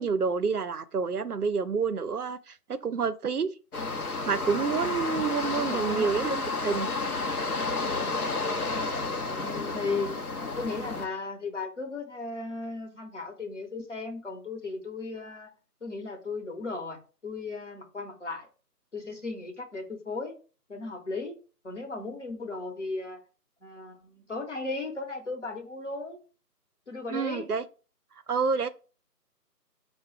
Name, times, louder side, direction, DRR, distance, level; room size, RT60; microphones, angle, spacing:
voice 1, 0.0-3.5 4.3-6.9 27.1-27.6 28.3-28.7, right 5 dB, 70° right, 0.5 m, -28 dB
sound 1, 3.7-11.1, left 3 dB, 65° left, 0.8 m, -31 dB
voice 2, 5.5-6.1 9.2-15.5 15.8-18.5 18.9-20.4 20.7-21.4 21.6-23.2 23.6-26.2 26.9-27.5, left 3 dB, 50° left, 1.0 m, -36 dB
4.7 x 2.2 x 4.5 m
figure-of-eight pair, 160°, 48 cm